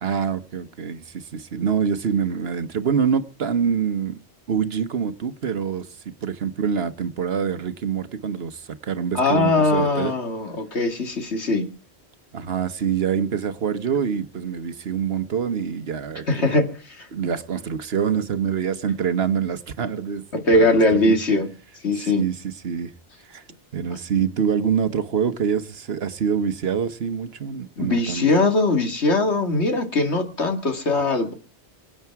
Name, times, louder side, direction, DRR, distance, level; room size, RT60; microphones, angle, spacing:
voice 1, 0.0-4.2 4.5-10.2 12.3-16.6 17.1-21.2 21.9-22.9 23.3-23.4 23.7-28.2, right 7 dB, 65° right, 1.2 m, -25 dB
voice 2, 9.1-11.7 16.3-16.7 17.0-17.1 20.3-21.5 21.8-22.2 27.8-31.3, left 2 dB, 80° left, 2.5 m, -21 dB
24.0 x 8.8 x 4.7 m
omnidirectional pair, 1.1 m